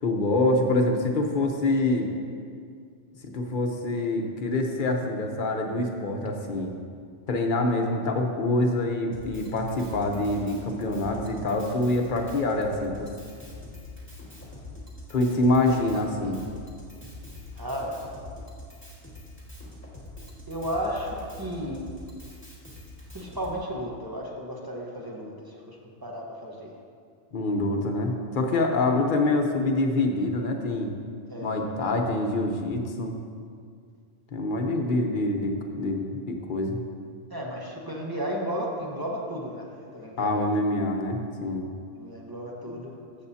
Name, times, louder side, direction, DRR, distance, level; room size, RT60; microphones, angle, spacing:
voice 1, 0.0-2.1 3.2-6.7 7.3-13.1 15.1-16.4 27.3-30.9 31.4-33.1 34.3-35.5 35.8-36.8 40.2-41.6 42.7-42.8, left 2 dB, 50° left, 2 dB, 1.0 m, -25 dB
Drum kit, 9.1-23.5, left 2 dB, 10° left, 1.8 m, -44 dB
voice 2, 17.5-18.0 20.5-21.8 23.1-26.7 31.3-31.6 37.3-40.4 42.0-42.9, equal, 20° right, -2 dB, 1.1 m, -34 dB
14.0 x 7.0 x 2.8 m, 2.2 s
omnidirectional pair, 1.2 m